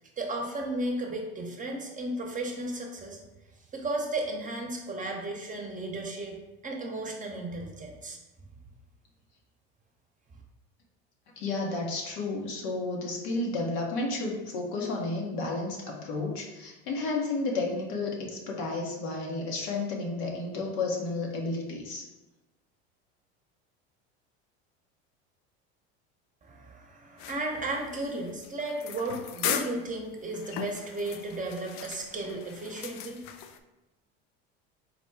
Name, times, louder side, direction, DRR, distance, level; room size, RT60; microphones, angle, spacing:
voice 1, 0.2-3.2 3.7-6.3 6.6-8.2 26.4-33.2, right 2 dB, 25° right, 1 dB, 0.8 m, -34 dB
voice 2, 11.4-22.1, left 3 dB, 70° left, 0 dB, 1.0 m, -32 dB
sound 1, 27.2-33.6, left 9 dB, 55° left, 0.4 m, -38 dB
4.1 x 2.2 x 4.5 m, 1.1 s
supercardioid pair, 90°, 33 cm